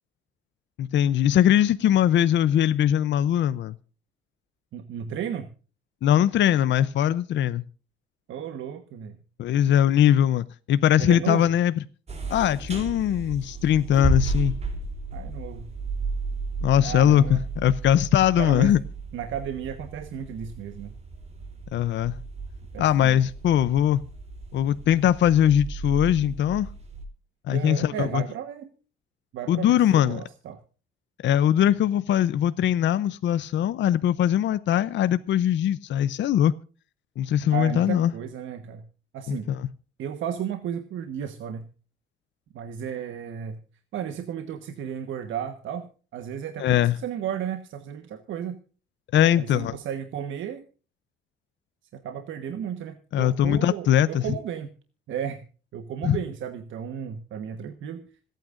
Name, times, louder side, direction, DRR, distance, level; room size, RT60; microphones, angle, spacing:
voice 1, 0.8-3.7 6.0-7.6 9.4-11.7 12.3-14.6 16.6-18.8 21.7-22.2 22.8-24.0 24.5-26.7 27.5-28.2 29.5-30.2 31.2-36.5 37.2-38.1 39.3-39.7 46.6-47.0 49.1-49.8 53.1-54.2 56.0-56.2, left 10 dB, 65° left, 0.6 m, -21 dB
voice 2, 4.7-5.5 8.3-9.2 11.0-11.5 15.1-15.7 16.8-17.4 18.4-18.7 19.1-20.9 22.7-23.2 27.5-28.7 29.3-30.6 37.5-38.8 39.1-39.5 40.0-41.7 42.5-43.6 43.9-45.9 46.1-48.6 49.4-50.6 51.9-54.7 55.1-55.4 55.7-58.1, right 9 dB, 75° right, 1.3 m, -34 dB
sound 1, 12.1-27.1, right 2 dB, 30° right, 3.2 m, -33 dB
26.0 x 9.2 x 2.5 m
cardioid pair, 90°, 20 cm